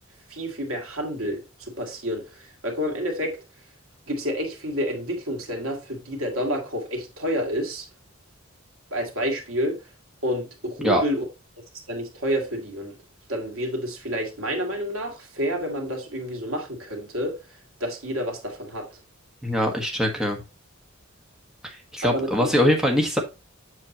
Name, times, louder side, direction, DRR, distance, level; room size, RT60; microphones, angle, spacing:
voice 1, 0.3-3.4 4.1-7.9 8.9-9.8 10.2-11.2 11.9-12.9 13.3-17.4 17.8-18.9 22.0-22.5, equal, 85° right, 2.2 m, -29 dB
voice 2, 19.4-20.4 21.6-23.2, equal, 5° right, 1.5 m, -22 dB
7.5 x 6.7 x 3.0 m
head